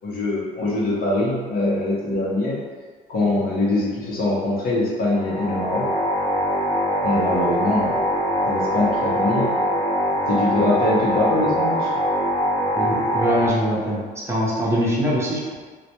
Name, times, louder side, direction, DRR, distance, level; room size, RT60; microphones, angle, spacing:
voice 1, 0.0-2.6 3.1-5.9 7.0-8.0 8.4-9.5 10.3-11.9, left 2 dB, 60° left, -5 dB, 0.8 m, -23 dB
sound 1, 5.1-13.5, equal, 30° left, 0.8 m, -23 dB
voice 2, 12.7-14.0 14.2-15.5, equal, 15° right, -7 dB, 0.6 m, -22 dB
2.1 x 2.1 x 2.8 m, 1.5 s
cardioid pair, 110°, 17 cm